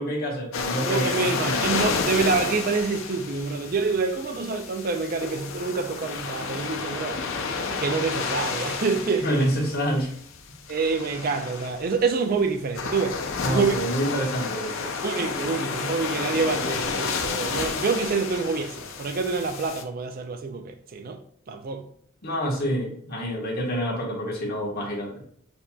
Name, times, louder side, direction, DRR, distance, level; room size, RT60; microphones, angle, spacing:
voice 1, 0.0-1.7 9.2-10.1 13.4-14.9 22.2-25.1, equal, 45° left, 1.4 m, -27 dB
sound 1, 0.5-19.8, left 5 dB, 70° left, 0.6 m, -31 dB
voice 2, 0.9-7.2 7.7-9.3 10.7-13.2 13.5-13.7 15.0-21.2 21.5-21.8, right 4 dB, 45° right, 0.4 m, -27 dB
6.6 x 2.8 x 2.3 m
head